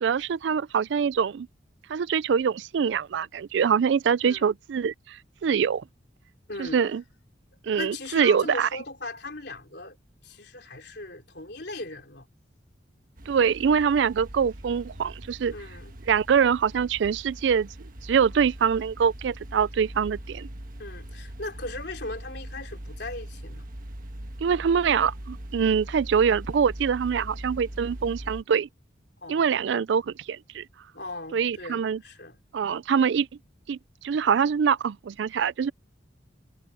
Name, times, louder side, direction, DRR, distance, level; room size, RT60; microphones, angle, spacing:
voice 1, 0.0-1.5 1.9-5.8 6.6-7.0 7.6-8.7 13.3-15.5 16.1-17.7 18.0-20.5 24.4-28.7 29.3-30.6 31.3-32.0 32.5-33.3 33.7-33.8 34.0-35.7, right 7 dB, 70° right, 0.4 m, -24 dB
voice 2, 4.2-4.5 6.5-6.8 7.8-10.0 10.2-12.3 15.5-16.0 20.8-23.7 29.2-29.6 30.9-32.4, left 2 dB, 60° left, 3.9 m, -38 dB
sound 1, 13.2-28.4, right 1 dB, 45° right, 1.4 m, -41 dB
head